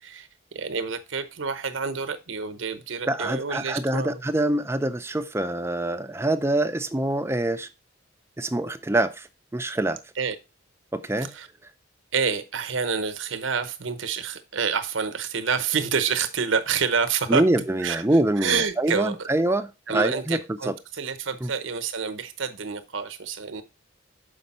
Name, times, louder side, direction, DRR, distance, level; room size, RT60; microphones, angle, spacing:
voice 1, 0.0-4.2 10.2-10.4 11.2-11.5 12.1-17.4 17.8-18.0 18.4-19.3 19.9-23.6, right 6 dB, 80° right, 0.9 m, -28 dB
voice 2, 3.1-7.7 8.4-9.3 9.5-10.0 10.9-11.3 17.3-20.4 20.7-20.8 21.4-21.5, right 1 dB, 15° right, 0.5 m, -25 dB
6.6 x 5.2 x 4.2 m
head